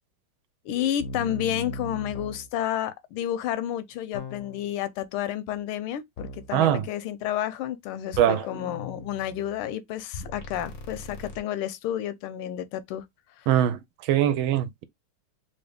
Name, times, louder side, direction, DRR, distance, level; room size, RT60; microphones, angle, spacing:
voice 1, 0.7-13.0, left 11 dB, 85° left, 1.5 m, -31 dB
sound 1, 1.0-2.5 4.1-4.7 6.2-6.5 8.1-9.6 10.1-11.4, left 2 dB, 65° left, 0.7 m, -38 dB
voice 2, 6.5-6.9 8.2-8.4 13.5-14.8, right 11 dB, 80° right, 1.3 m, -22 dB
3.5 x 2.7 x 3.3 m
omnidirectional pair, 2.3 m